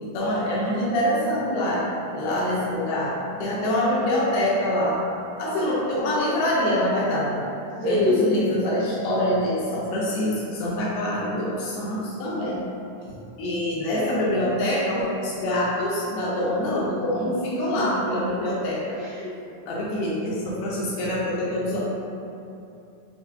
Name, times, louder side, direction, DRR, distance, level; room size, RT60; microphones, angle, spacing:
voice 1, 0.0-1.8 2.1-3.1 3.4-5.0 5.4-7.4 7.8-12.7 13.0-13.1 13.4-19.0 19.7-21.8, left 1 dB, 80° left, -6 dB, 2.4 m, -25 dB
voice 2, 7.8-8.3 17.7-18.1 19.0-19.3, left 1 dB, 75° right, -15 dB, 1.3 m, -24 dB
6.7 x 2.3 x 2.3 m, 2.7 s
omnidirectional pair, 4.7 m